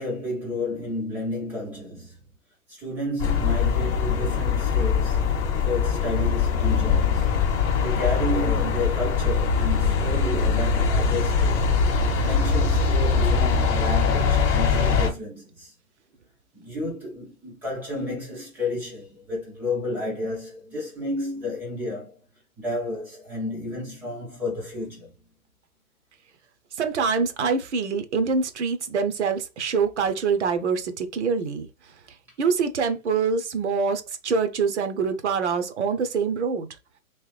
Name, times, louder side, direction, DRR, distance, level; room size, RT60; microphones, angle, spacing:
voice 1, 0.0-2.2 2.7-5.4 5.6-7.3 7.8-15.7 16.5-22.2 22.6-25.1, left 1 dB, 5° right, 0.5 m, -31 dB
sound 1, 3.2-15.1, left 5 dB, 20° left, 0.8 m, -22 dB
voice 2, 26.8-31.7 32.4-36.7, right 5 dB, 50° right, 0.7 m, -25 dB
3.2 x 3.1 x 3.2 m
figure-of-eight pair, 120°, 43 cm